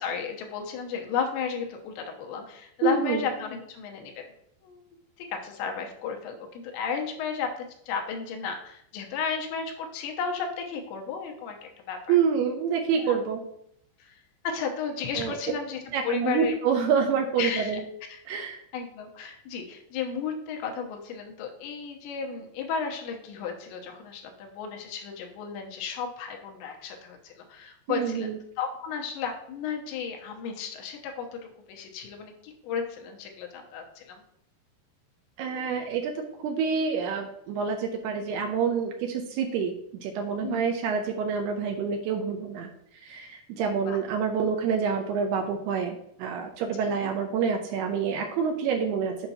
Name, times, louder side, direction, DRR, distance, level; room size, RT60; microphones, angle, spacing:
voice 1, 0.0-4.3 4.6-4.8 5.3-7.5 7.9-12.2 13.0-13.2 14.0-14.2 14.4-16.6 17.4-17.7 18.1-18.2 18.7-28.3 28.6-31.3 31.7-34.2 40.4-40.7 43.9-44.0 46.8-47.1, left 6 dB, 85° left, 2 dB, 3.2 m, -33 dB
voice 2, 2.8-3.3 12.1-13.4 15.2-15.4 15.9-17.8 18.3-18.6 27.9-28.4 35.4-39.7 40.0-42.7 42.9-49.3, right 6 dB, 80° right, 3 dB, 2.4 m, -27 dB
8.0 x 5.8 x 2.8 m, 0.72 s
omnidirectional pair, 5.1 m